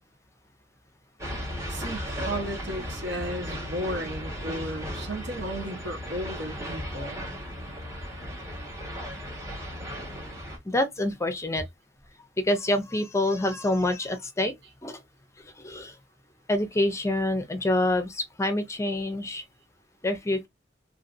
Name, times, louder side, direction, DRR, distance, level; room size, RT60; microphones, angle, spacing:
sound 1, 1.2-10.6, equal, 20° right, 1.3 m, -36 dB
voice 1, 1.7-7.2, equal, 70° right, 1.2 m, -34 dB
voice 2, 10.7-11.6 12.4-14.5 14.8-15.0 15.6-15.9 16.5-19.4 20.0-20.5, left 1 dB, 15° left, 0.6 m, -26 dB
2.9 x 2.8 x 2.5 m
head